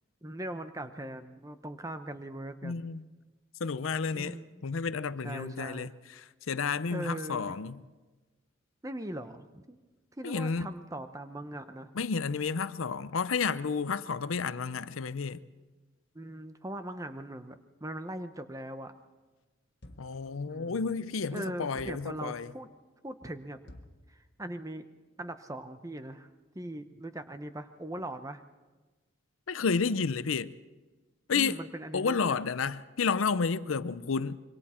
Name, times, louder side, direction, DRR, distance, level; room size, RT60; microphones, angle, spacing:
voice 1, 0.2-2.9 4.1-4.6 5.2-5.9 6.9-7.6 8.8-9.8 10.2-11.9 16.1-18.9 20.5-21.0 21.3-22.7 23.0-23.6 24.1-24.8 25.2-26.3 26.5-28.4 31.3-32.4, right 1 dB, 15° right, 0.8 m, -40 dB
voice 2, 2.6-3.0 3.6-4.4 4.6-5.9 6.5-7.8 10.2-10.7 12.0-15.4 20.0-22.5 29.5-30.5 31.3-31.6 31.9-34.4, left 5 dB, 80° left, 0.6 m, -31 dB
sound 1, 19.8-20.3 21.8-22.2 23.7-24.1, left 1 dB, 60° left, 1.5 m, -50 dB
26.0 x 23.0 x 4.4 m
head